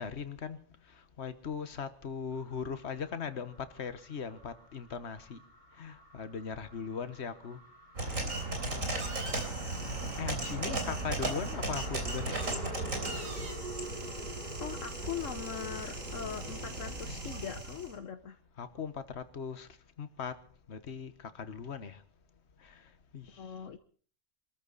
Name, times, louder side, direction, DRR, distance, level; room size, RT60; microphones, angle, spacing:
voice 1, 0.0-5.4 5.7-7.6 8.0-9.2 10.1-12.8 18.6-20.4 20.7-22.0 22.6-23.5, left 6 dB, 60° left, 1.5 m, -40 dB
sound 1, 2.3-17.4, right 1 dB, 35° right, 5.1 m, -49 dB
sound 2, 8.0-17.9, right 2 dB, 90° right, 3.9 m, -36 dB
voice 2, 14.6-18.4 23.4-23.8, left 8 dB, 75° left, 1.3 m, -41 dB
25.0 x 14.0 x 4.1 m
omnidirectional pair, 1.3 m